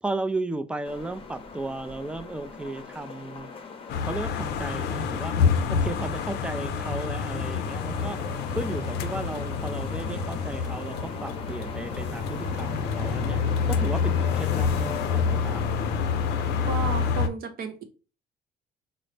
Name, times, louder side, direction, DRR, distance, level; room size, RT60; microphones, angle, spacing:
voice 1, 0.0-3.5 4.0-5.3 5.7-8.2 8.5-15.9, right 2 dB, 5° right, 0.3 m, -35 dB
sound 1, 0.8-17.1, left 4 dB, 35° left, 0.7 m, -40 dB
sound 2, 3.9-17.3, left 6 dB, 75° left, 0.5 m, -27 dB
voice 2, 16.7-17.8, right 5 dB, 60° right, 0.8 m, -33 dB
3.9 x 2.0 x 3.2 m
cardioid pair, 110°, 17 cm